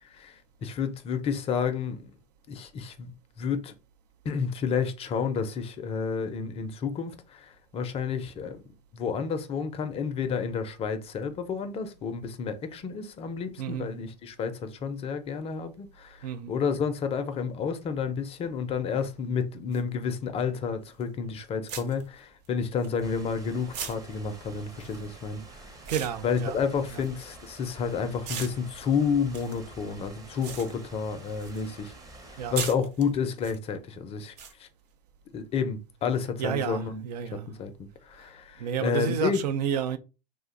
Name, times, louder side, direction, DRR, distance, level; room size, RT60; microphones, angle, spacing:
voice 1, 0.0-2.1 2.5-3.1 3.4-3.7 4.2-8.6 8.9-25.8 26.2-31.9 32.3-34.7 35.3-37.0 37.3-39.4, left 6 dB, 30° left, 0.5 m, -30 dB
voice 2, 13.6-13.9 16.2-16.5 25.9-26.6 32.4-32.5 36.4-37.5 38.6-40.0, right 8 dB, 75° right, 0.5 m, -30 dB
sound 1, 19.7-19.8 21.0-21.2 21.7-23.3 23.7-27.8 28.2-31.7 32.0-33.6 34.4-34.5, right 7 dB, 50° right, 0.8 m, -40 dB
sound 2, 23.0-32.7, right 2 dB, 15° right, 0.7 m, -48 dB
2.5 x 2.1 x 3.7 m
hypercardioid pair, 100°, 21 cm